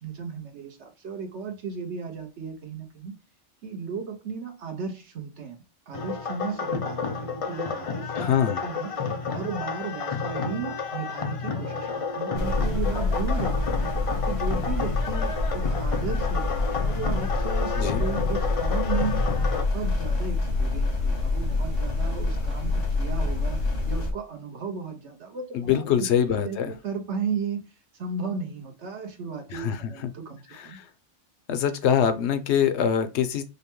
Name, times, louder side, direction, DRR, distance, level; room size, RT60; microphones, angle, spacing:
voice 1, 0.0-3.1 3.6-5.6 5.9-8.3 8.6-13.9 14.2-27.7 28.0-30.8, right 5 dB, 70° right, 1.2 m, -35 dB
sound 1, 5.9-19.6, left 5 dB, 45° left, 0.4 m, -31 dB
voice 2, 8.2-8.6 17.8-18.0 25.5-26.7 29.5-30.1 30.5-30.9 31.5-33.4, left 8 dB, 70° left, 0.8 m, -24 dB
sound 2, 12.3-24.1, left 3 dB, 90° left, 1.5 m, -26 dB
5.4 x 2.2 x 2.9 m
omnidirectional pair, 1.2 m